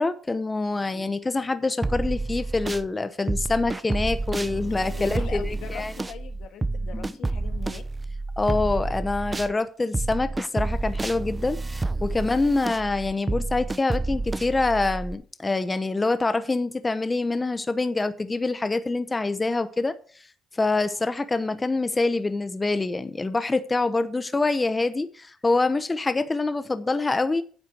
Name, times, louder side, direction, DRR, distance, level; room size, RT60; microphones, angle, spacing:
voice 1, 0.0-5.9 6.9-7.1 8.4-20.0 20.5-27.4, left 3 dB, 20° left, 0.9 m, -25 dB
sound 1, 1.8-2.9 3.3-9.5 9.9-15.1, right 2 dB, 20° right, 0.7 m, -29 dB
voice 2, 4.9-7.8, left 8 dB, 80° left, 1.7 m, -40 dB
9.7 x 7.7 x 6.3 m
cardioid pair, 90°, 0 cm